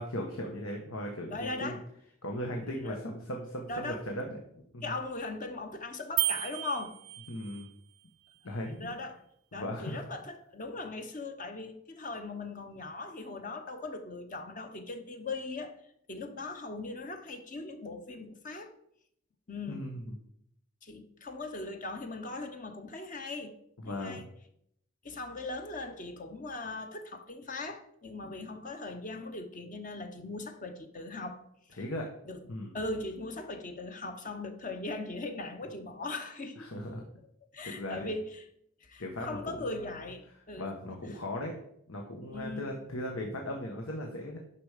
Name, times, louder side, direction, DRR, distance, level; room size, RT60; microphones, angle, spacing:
voice 1, 0.0-1.8 2.2-4.9 7.3-7.7 8.4-8.9 9.5-10.0 19.7-20.1 23.8-24.2 31.8-32.1 32.5-32.8 36.6-37.0 37.6-38.1 39.0-39.9 40.6-41.5 41.9-44.4, left 1 dB, 85° left, 1.3 m, -38 dB
voice 2, 1.3-1.8 2.8-3.0 3.7-4.0 4.8-7.0 8.7-9.2 9.5-15.8 16.1-18.7 19.5-19.8 20.8-23.5 23.8-24.3 25.0-31.4 32.3-32.4 32.7-36.7 36.9-37.0 37.4-38.4 38.8-40.7 42.3-42.7, left 2 dB, 40° left, 0.8 m, -39 dB
sound 1, 6.2-7.7, right 18 dB, 85° right, 0.4 m, -33 dB
10.0 x 6.1 x 5.0 m
head